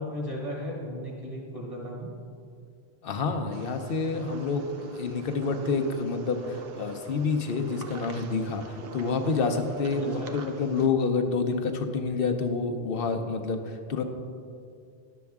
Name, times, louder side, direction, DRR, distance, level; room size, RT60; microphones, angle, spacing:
voice 1, 0.0-2.1 10.2-10.4, equal, 35° right, -4 dB, 1.5 m, -35 dB
voice 2, 3.0-14.0, left 4 dB, 65° left, 5 dB, 0.9 m, -28 dB
sound 1, 3.5-10.9, right 4 dB, 70° right, 0.9 m, -44 dB
11.0 x 7.1 x 3.5 m, 2.3 s
omnidirectional pair, 1.0 m